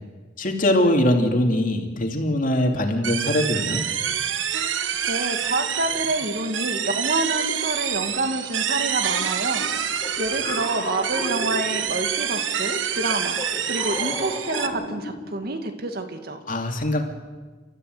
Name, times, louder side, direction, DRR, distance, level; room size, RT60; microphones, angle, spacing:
voice 1, 0.4-3.8 16.5-17.0, left 1 dB, 45° left, 3 dB, 2.7 m, -22 dB
sound 1, 3.0-14.7, right 8 dB, 80° right, 1.2 m, -27 dB
voice 2, 4.6-9.6 9.9-16.4, right 2 dB, 55° right, 6 dB, 2.2 m, -28 dB
sound 2, 9.5-12.3 12.9-15.6, left 2 dB, 25° left, 2.3 m, -34 dB
29.5 x 13.5 x 7.9 m, 1.4 s
head